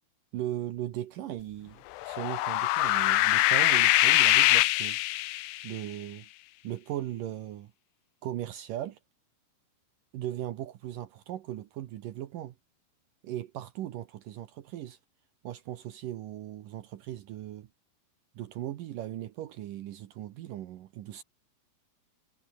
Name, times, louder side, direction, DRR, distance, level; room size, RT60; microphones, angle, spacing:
voice 1, 0.3-5.0 5.6-6.3 6.6-7.7 8.2-9.0 10.1-12.5 13.2-15.0 15.4-17.7 18.4-21.2, right 13 dB, 85° right, 1.9 m, -38 dB
sound 1, 2.0-5.7, left 17 dB, 75° left, 2.6 m, -23 dB
omnidirectional pair, 5.7 m